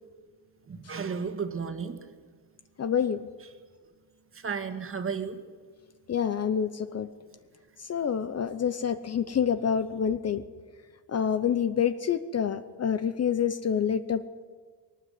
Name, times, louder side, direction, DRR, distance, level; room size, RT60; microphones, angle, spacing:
voice 1, 0.7-2.0 4.3-5.4, right 6 dB, 30° right, 8 dB, 2.1 m, -33 dB
voice 2, 2.8-3.3 6.1-7.1 7.8-10.4 11.1-14.2, left 8 dB, 35° left, 12 dB, 0.8 m, -27 dB
21.0 x 18.5 x 9.6 m, 1.5 s
cardioid pair, 155°, 44 cm